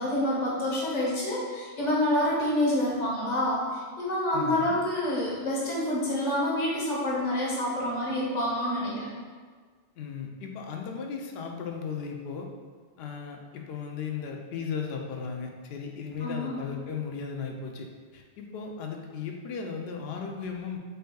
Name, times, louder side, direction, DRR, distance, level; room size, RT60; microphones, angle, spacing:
voice 1, 0.0-9.1 16.2-16.6, left 1 dB, 45° left, -6 dB, 1.1 m, -27 dB
voice 2, 4.3-4.8 10.0-12.5 13.0-20.8, left 6 dB, 70° left, 2 dB, 0.8 m, -36 dB
6.7 x 2.7 x 2.3 m, 1.5 s
omnidirectional pair, 1.1 m